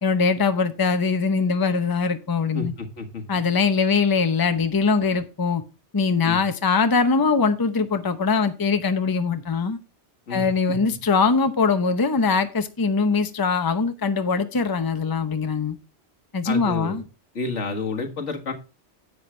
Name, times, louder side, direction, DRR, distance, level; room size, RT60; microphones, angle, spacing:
voice 1, 0.0-2.7 3.3-5.6 5.9-9.8 10.3-15.8 16.3-17.0, left 4 dB, 20° left, 0.7 m, -22 dB
voice 2, 2.5-3.2 6.2-6.4 10.3-10.8 16.5-17.0 17.4-18.5, left 3 dB, 85° left, 1.9 m, -30 dB
10.5 x 7.9 x 3.2 m
omnidirectional pair, 1.2 m